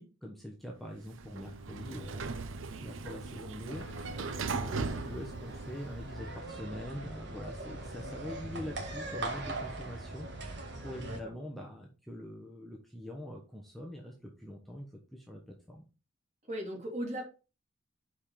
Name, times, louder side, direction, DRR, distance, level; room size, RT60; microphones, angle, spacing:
voice 1, 0.0-2.2 2.8-3.9 4.5-15.8, equal, ahead, -1 dB, 1.0 m, -44 dB
Sliding door, 1.0-6.2, right 4 dB, 75° right, 0.7 m, -39 dB
sound 1, 3.7-11.2, right 2 dB, 55° right, 1.6 m, -41 dB
voice 2, 16.5-17.2, right 1 dB, 35° right, 1 dB, 2.6 m, -38 dB
5.5 x 5.1 x 5.6 m, 0.33 s
head